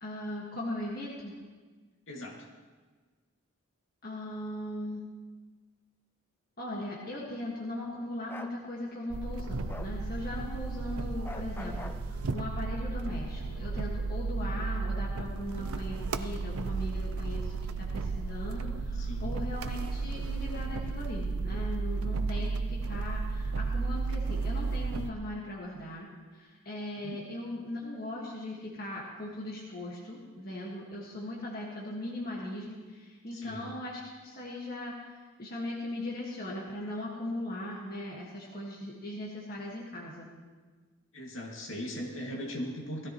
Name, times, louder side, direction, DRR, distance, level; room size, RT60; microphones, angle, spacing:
voice 1, 0.0-1.3 4.0-5.0 6.6-40.3, left 1 dB, 45° left, -5 dB, 1.7 m, -39 dB
voice 2, 2.1-2.5 18.9-19.4 27.0-27.2 33.3-33.7 41.1-43.1, equal, 60° left, -1 dB, 2.3 m, -39 dB
Bark, 8.3-8.6 9.7-9.9 11.3-12.0, left 2 dB, 10° left, 0.4 m, -43 dB
sound 1, 9.1-25.1, right 3 dB, 80° right, 0.6 m, -33 dB
18.0 x 13.0 x 3.1 m, 1.4 s
head